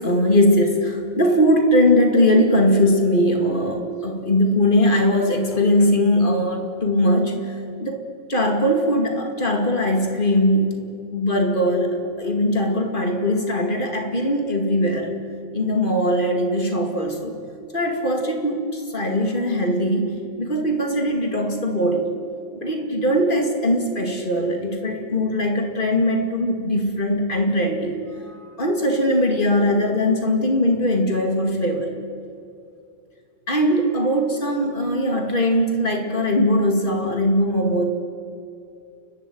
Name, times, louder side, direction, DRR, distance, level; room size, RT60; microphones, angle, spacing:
voice 1, 0.0-8.0 8.3-15.1 15.5-17.3 17.7-22.1 22.6-28.0 28.3-31.9 33.5-37.8, left 1 dB, 25° left, 3 dB, 2.5 m, -20 dB
29.5 x 12.5 x 9.4 m, 2.5 s
omnidirectional pair, 2.3 m